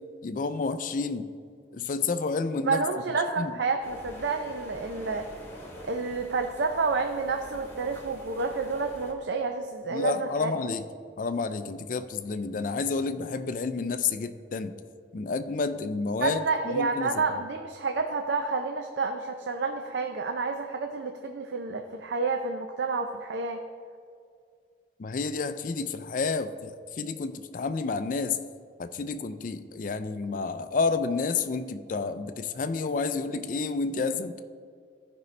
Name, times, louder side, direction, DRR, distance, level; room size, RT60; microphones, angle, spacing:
voice 1, 0.2-1.3 1.7-2.8 3.4-3.5 9.9-10.8 11.2-14.7 15.1-17.2 25.0-28.4 28.8-34.4, left 4 dB, 45° left, 10 dB, 0.4 m, -30 dB
voice 2, 2.6-5.3 5.8-10.5 16.2-23.6, right 4 dB, 85° right, 5 dB, 0.5 m, -29 dB
sound 1, 3.8-9.1, equal, 15° left, 1.3 m, -46 dB
14.5 x 5.3 x 3.2 m, 2.2 s
head